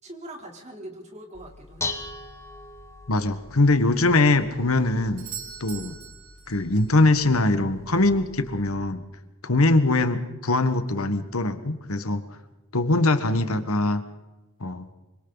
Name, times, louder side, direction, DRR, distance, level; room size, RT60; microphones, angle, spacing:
voice 1, 0.0-2.0 9.9-10.1, right 1 dB, 30° right, 1 dB, 3.5 m, -42 dB
Dishes pots and pans, 1.3-8.7, left 3 dB, 10° left, 1.4 m, -40 dB
voice 2, 3.1-5.2 5.6-6.0 6.5-9.0 9.4-12.2 12.7-14.0 14.6-14.8, left 2 dB, 80° left, 9 dB, 1.5 m, -22 dB
Doorbell, 5.2-7.0 11.1-11.2, right 8 dB, 90° right, 4.1 m, -41 dB
25.5 x 25.0 x 4.1 m, 1.1 s
head